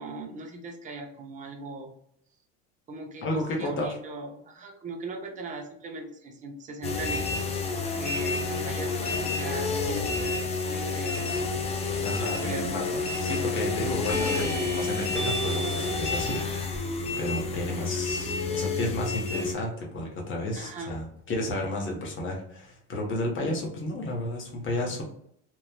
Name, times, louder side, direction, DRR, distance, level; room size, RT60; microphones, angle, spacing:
voice 1, 0.0-1.9 2.9-11.4 12.2-12.7 20.5-20.9, right 3 dB, 25° right, 2 dB, 0.6 m, -39 dB
voice 2, 3.2-4.0 12.0-25.0, left 1 dB, 35° left, 0 dB, 1.0 m, -32 dB
sound 1, 6.8-19.5, left 4 dB, 20° left, 0.4 m, -29 dB
sound 2, 12.4-12.9 14.1-16.8, right 3 dB, ahead, 1.0 m, -36 dB
3.1 x 2.3 x 2.2 m, 0.69 s
supercardioid pair, 130°, 34 cm